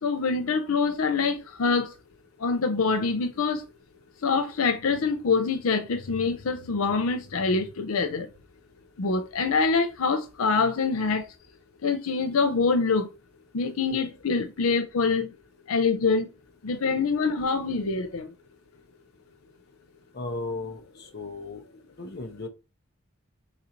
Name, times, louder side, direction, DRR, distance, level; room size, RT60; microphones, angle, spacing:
voice 1, 0.0-1.9 2.4-3.6 4.2-8.3 9.0-11.2 11.8-13.1 13.5-15.3 15.7-16.3 16.6-18.3, left 4 dB, 85° left, 0.6 m, -25 dB
voice 2, 20.1-21.6 22.0-22.5, left 3 dB, 50° left, 0.8 m, -35 dB
4.0 x 2.6 x 4.3 m
head